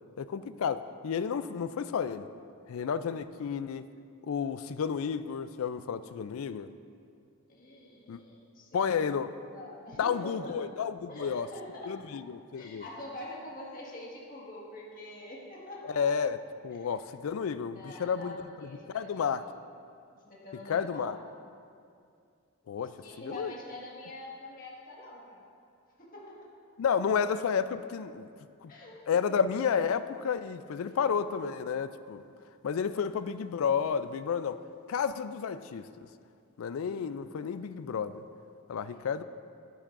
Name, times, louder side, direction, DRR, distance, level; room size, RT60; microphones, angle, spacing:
voice 1, 0.2-2.3 2.7-3.8 4.2-6.7 8.1-8.2 8.7-9.3 10.0-11.5 11.9-12.9 16.0-16.4 16.6-19.4 20.7-21.2 22.7-22.9 23.2-23.5 26.8-28.3 28.6-28.7 29.1-32.2 32.6-34.6 34.9-35.9 36.6-38.2 38.7-39.2, left 6 dB, 70° left, 13 dB, 0.3 m, -31 dB
voice 2, 7.5-9.2 9.4-10.5 11.1-11.9 12.5-16.0 16.7-17.0 17.7-19.5 20.3-21.1 23.0-25.5 26.0-26.6 28.7-29.4 38.9-39.2, left 1 dB, 40° left, -4 dB, 1.7 m, -45 dB
12.5 x 9.9 x 2.5 m, 2.4 s
head